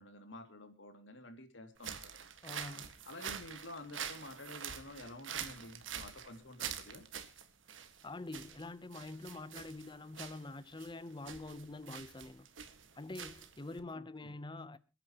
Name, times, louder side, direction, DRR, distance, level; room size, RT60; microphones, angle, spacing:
voice 1, 0.0-2.1 3.0-7.0 13.9-14.4, left 1 dB, 70° left, 2.6 m, -50 dB
sound 1, 1.8-13.8, right 8 dB, 85° right, 1.8 m, -46 dB
voice 2, 2.4-2.9 7.7-12.5 13.0-14.8, left 2 dB, 25° left, 0.8 m, -46 dB
28.0 x 10.0 x 3.0 m
head